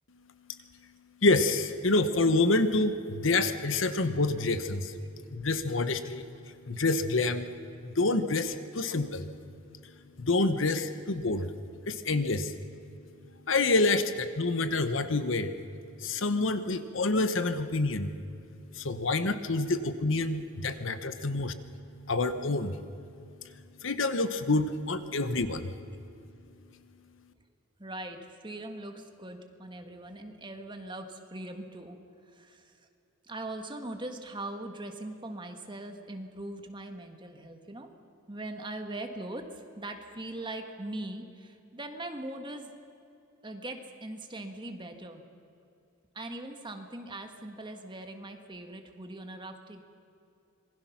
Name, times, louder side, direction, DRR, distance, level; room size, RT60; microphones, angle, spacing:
voice 1, 1.2-4.9 5.3-6.3 6.7-7.5 7.8-9.3 10.2-11.5 11.9-12.5 13.5-15.5 16.0-18.1 18.7-21.5 22.1-22.8 23.8-25.7, left 2 dB, 70° left, 10 dB, 1.1 m, -27 dB
voice 2, 27.8-32.0 32.3-32.7 33.2-38.0 38.3-42.7 43.4-45.2 46.1-49.8, right 1 dB, 25° right, 5 dB, 1.7 m, -41 dB
26.5 x 21.0 x 5.9 m, 2.7 s
head